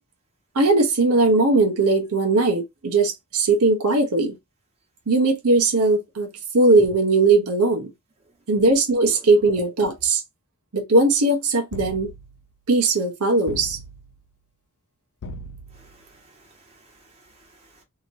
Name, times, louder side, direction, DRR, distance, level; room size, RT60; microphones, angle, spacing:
voice 1, 0.5-4.3 5.1-7.9 8.5-10.2 10.7-12.1 12.7-13.8, right 3 dB, 90° right, 0.8 m, -19 dB
voice 2, 9.1-9.5 15.7-17.8, right 1 dB, 30° right, 1.3 m, -51 dB
sound 1, 11.7-12.5 13.5-14.2 15.2-16.0, equal, 85° left, 0.5 m, -38 dB
3.1 x 2.8 x 2.7 m
head